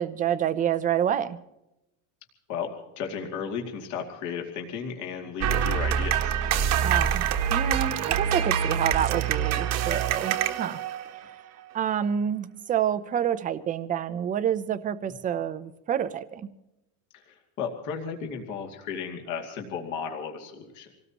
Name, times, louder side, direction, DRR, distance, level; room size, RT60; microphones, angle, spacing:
voice 1, 0.0-1.4 6.8-10.8 11.7-16.5, right 9 dB, 20° right, 0.6 m, -28 dB
voice 2, 2.5-6.4 17.1-20.9, left 6 dB, 45° left, 2.6 m, -34 dB
sound 1, 5.4-11.3, right 9 dB, 40° right, 1.3 m, -25 dB
26.5 x 18.5 x 3.0 m
cardioid pair, 170°, 40 cm